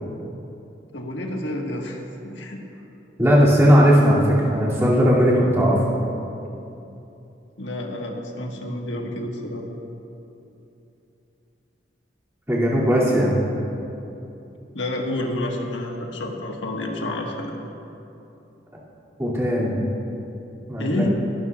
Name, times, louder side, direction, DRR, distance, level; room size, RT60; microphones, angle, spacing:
voice 1, 0.9-2.6 7.6-9.6 14.7-17.5 20.8-21.1, left 1 dB, 90° left, 0 dB, 1.5 m, -29 dB
voice 2, 3.2-5.8 12.5-13.3 19.2-19.8 20.7-21.1, equal, 15° right, -8 dB, 2.5 m, -17 dB
22.5 x 12.5 x 2.4 m, 2.8 s
head